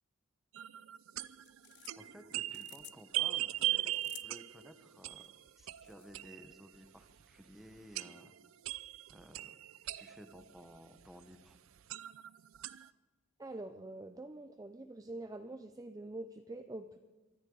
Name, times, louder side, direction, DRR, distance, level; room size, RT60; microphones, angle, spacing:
sound 1, 0.5-6.8 7.2-7.3 7.8-10.8 11.5-11.6 11.9-12.9, right 15 dB, 75° right, 0.4 m, -39 dB
sound 2, 1.2-6.2, left 17 dB, 55° left, 0.4 m, -57 dB
voice 1, 2.0-5.3 5.6-8.3 9.1-9.5 9.9-11.6, equal, ahead, 7 dB, 1.1 m, -56 dB
voice 2, 13.4-17.0, right 2 dB, 15° right, 7 dB, 0.5 m, -45 dB
23.5 x 13.5 x 3.9 m, 1.2 s
head